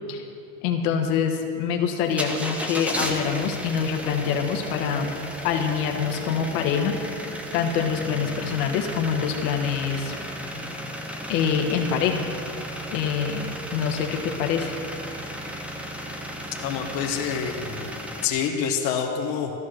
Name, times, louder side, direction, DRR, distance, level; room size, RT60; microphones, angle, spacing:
voice 1, 0.6-7.0 7.5-10.1 11.3-12.4 12.9-14.7, left 7 dB, 65° left, 3 dB, 1.5 m, -25 dB
sound 1, 2.1-18.3, equal, 5° right, 0.6 m, -34 dB
voice 2, 16.6-17.9 18.2-19.5, left 7 dB, 45° left, 1 dB, 1.3 m, -27 dB
13.5 x 10.5 x 6.5 m, 2.6 s
supercardioid pair, 160°, 48 cm